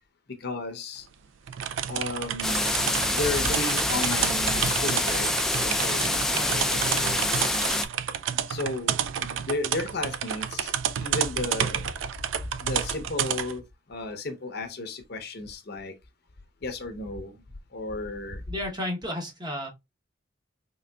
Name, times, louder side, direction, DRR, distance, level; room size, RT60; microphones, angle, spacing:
voice 1, 0.4-1.0 1.9-2.7 3.1-5.3 5.6-7.4 8.5-10.7 11.0-11.8 12.6-13.6 13.9-15.9 16.6-17.3 17.7-18.4, left 2 dB, 55° left, 0.7 m, -33 dB
sound 1, 1.5-13.6, right 9 dB, 90° right, 0.4 m, -30 dB
sound 2, 2.4-7.8, left 1 dB, 5° left, 0.4 m, -26 dB
voice 2, 18.5-19.7, left 1 dB, 20° right, 0.9 m, -32 dB
3.8 x 3.4 x 2.2 m
head